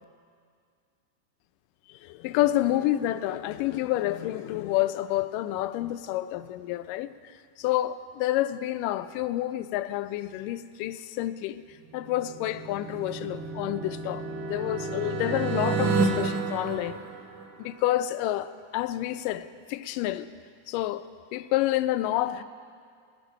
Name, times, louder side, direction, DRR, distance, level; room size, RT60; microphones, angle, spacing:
voice 1, 2.2-7.1 7.6-11.6 11.9-14.2 14.5-17.0 17.6-20.3 20.7-21.0 21.3-22.4, left 14 dB, 90° left, 12 dB, 2.2 m, -28 dB
sound 1, 11.9-17.8, right 3 dB, 65° right, 1.0 m, -30 dB
20.0 x 10.5 x 5.5 m, 2.2 s
omnidirectional pair, 3.8 m